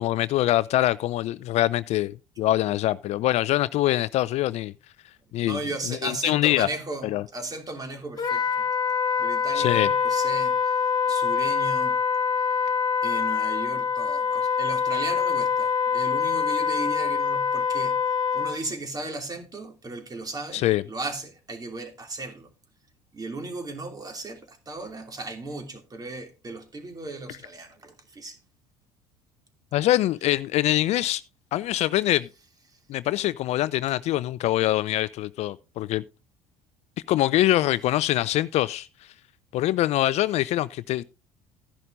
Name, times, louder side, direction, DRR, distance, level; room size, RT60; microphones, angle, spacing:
voice 1, 0.0-4.7 5.3-5.6 5.9-6.7 7.0-7.2 9.5-9.9 20.5-20.8 29.7-31.2 31.5-32.3 32.9-36.0 37.1-38.9 39.5-41.0, left 15 dB, 50° left, 0.4 m, -24 dB
voice 2, 5.4-8.4 9.2-10.8 11.1-12.0 12.6-12.7 13.0-18.0 18.3-22.5 23.1-28.4 32.7-32.8, right 2 dB, 25° right, 2.8 m, -36 dB
Wind instrument woodwind instrument, 8.2-18.6, left 6 dB, 30° left, 2.5 m, -25 dB
14.0 x 11.0 x 2.6 m
hypercardioid pair, 65°, 14 cm